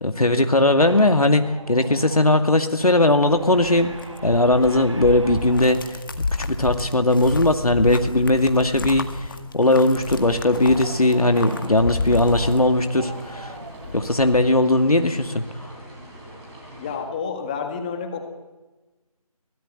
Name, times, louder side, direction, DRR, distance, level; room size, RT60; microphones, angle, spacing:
voice 1, 0.0-3.9 4.2-9.3 9.5-13.5 13.9-15.7, left 2 dB, 75° left, 7 dB, 2.3 m, -19 dB
sound 1, 0.9-17.2, right 2 dB, 55° right, 4.2 m, -41 dB
sound 2, 3.3-13.2 13.5-14.5, left 3 dB, 35° left, 1.8 m, -31 dB
sound 3, 9.7-17.0, equal, 10° right, 3.9 m, -45 dB
voice 2, 16.8-18.2, left 6 dB, 15° left, 5 dB, 1.8 m, -29 dB
23.0 x 18.5 x 9.1 m, 1.2 s
figure-of-eight pair, 160°, 19 cm